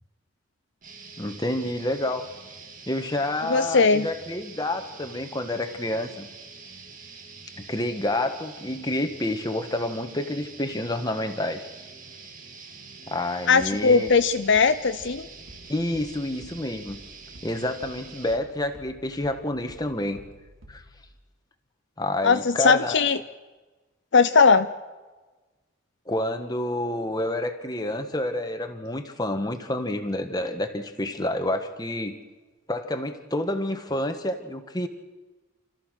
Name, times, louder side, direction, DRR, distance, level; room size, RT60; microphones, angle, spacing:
sound 1, 0.8-18.4, right 4 dB, 40° right, 2.2 m, -45 dB
voice 1, 1.2-2.3 2.9-6.3 7.6-11.7 13.1-14.1 15.7-17.0 17.4-20.2 20.7-20.8 22.0-23.0 26.1-32.2 32.7-34.9, left 1 dB, 20° left, 7 dB, 1.4 m, -29 dB
voice 2, 3.5-4.1 13.5-15.3 22.2-23.2 24.1-24.7, left 4 dB, 55° left, 10 dB, 0.6 m, -19 dB
sound 2, 13.6-21.1, equal, 75° right, 3.3 m, -51 dB
29.5 x 14.0 x 6.5 m, 1.2 s
head